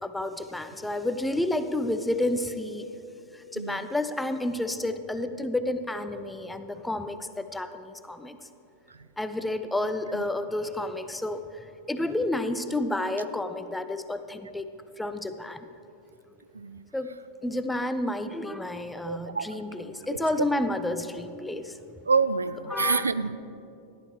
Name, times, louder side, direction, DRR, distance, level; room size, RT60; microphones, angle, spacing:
voice 1, 0.0-2.9 3.3-8.4 9.2-11.4 11.9-14.7 15.0-15.7 16.9-17.1 17.4-21.8 22.7-23.1, left 1 dB, 5° left, 10 dB, 0.5 m, -30 dB
voice 2, 3.5-3.9 8.9-9.0 16.5-16.8 19.0-19.5 20.1-20.2 22.1-23.4, right 4 dB, 75° right, 14 dB, 0.3 m, -27 dB
14.0 x 12.0 x 3.3 m, 2.8 s
figure-of-eight pair, 90°, 0 cm